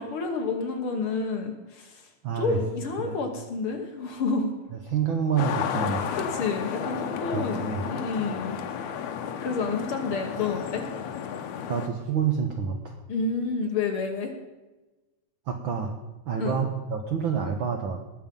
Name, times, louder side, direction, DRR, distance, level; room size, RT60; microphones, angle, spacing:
voice 1, 0.0-2.0 2.3-4.5 6.1-8.6 9.4-10.8 13.1-14.3 16.4-16.6, left 4 dB, 55° left, 3 dB, 1.9 m, -29 dB
voice 2, 2.2-2.6 3.0-3.2 4.7-6.2 7.3-7.8 11.7-13.0 15.5-15.9 16.3-18.0, right 7 dB, 65° right, 4 dB, 1.2 m, -28 dB
sound 1, 5.4-11.9, left 8 dB, 80° left, 2.3 m, -32 dB
19.5 x 7.4 x 5.4 m, 1.1 s
omnidirectional pair, 3.4 m